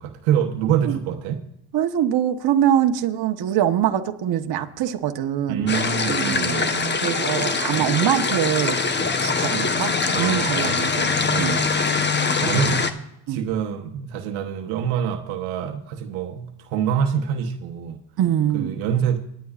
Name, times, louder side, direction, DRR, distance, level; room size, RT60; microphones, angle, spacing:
voice 1, 0.0-1.4 5.5-7.0 7.7-7.9 9.0-9.1 10.1-10.8 11.3-11.6 12.2-12.8 13.3-18.0 18.5-19.2, right 8 dB, 85° right, 1.1 m, -26 dB
voice 2, 1.7-5.7 6.1-6.6 7.0-8.8 9.2-11.1 11.4-11.6 13.3-13.4 18.2-18.7, right 10 dB, 55° right, 1.2 m, -23 dB
sound 1, 5.7-12.9, left 4 dB, 25° left, 1.0 m, -23 dB
24.0 x 9.4 x 2.5 m
supercardioid pair, 90°, 46 cm